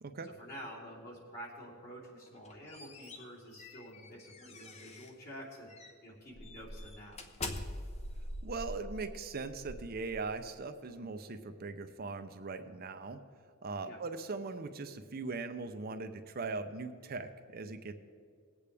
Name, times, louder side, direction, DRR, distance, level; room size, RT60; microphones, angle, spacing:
voice 1, 0.2-5.7 6.0-7.2 13.8-14.0, equal, 50° left, -5 dB, 3.2 m, -49 dB
sound 1, 2.3-5.2 5.7-5.9 6.4-10.6, left 1 dB, 35° left, 0.8 m, -44 dB
voice 2, 8.4-13.2 13.6-18.0, right 3 dB, 50° right, 8 dB, 0.6 m, -40 dB
20.5 x 8.4 x 3.4 m, 2.1 s
head